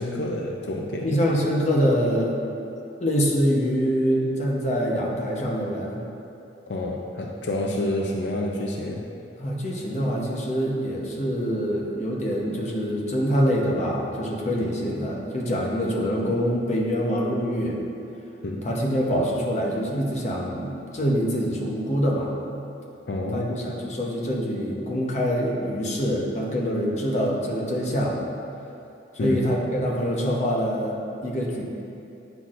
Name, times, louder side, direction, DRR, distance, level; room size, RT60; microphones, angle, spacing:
voice 1, 0.0-1.2 6.7-9.1 18.4-18.6 23.1-23.5 29.2-29.4, left 1 dB, 75° left, 0 dB, 0.5 m, -28 dB
voice 2, 1.0-2.5 3.0-6.0 9.4-17.8 18.6-22.3 23.3-28.2 29.2-30.9 31.2-31.6, equal, 40° left, -3 dB, 0.9 m, -25 dB
9.1 x 5.9 x 2.5 m, 2.7 s
head